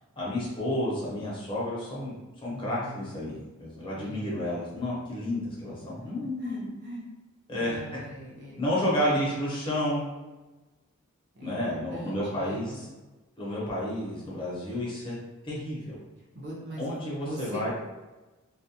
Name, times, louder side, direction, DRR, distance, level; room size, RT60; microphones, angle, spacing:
voice 1, 0.2-2.1 2.4-6.7 7.5-8.0 8.6-10.0 11.4-12.8 13.4-15.1 15.4-16.0 16.8-17.7, left 1 dB, 25° left, -7 dB, 0.7 m, -31 dB
voice 2, 2.5-3.2 3.9-4.3 6.0-7.1 7.5-8.6 9.0-9.4 11.3-12.8 16.3-16.9 17.2-17.7, equal, 55° right, -4 dB, 0.7 m, -42 dB
2.4 x 2.1 x 2.7 m, 1.1 s
head